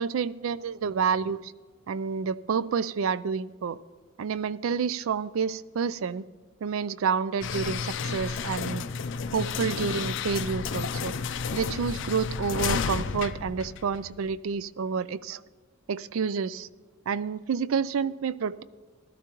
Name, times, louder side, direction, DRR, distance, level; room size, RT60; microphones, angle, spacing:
voice 1, 0.0-1.5 1.9-3.8 4.2-6.2 6.6-8.8 9.3-11.1 11.5-15.4 15.9-16.7 17.1-18.6, right 6 dB, 75° right, 18 dB, 0.4 m, -29 dB
sound 1, 7.4-14.4, left 5 dB, 60° left, 0.5 m, -32 dB
15.5 x 12.5 x 3.0 m, 1.4 s
head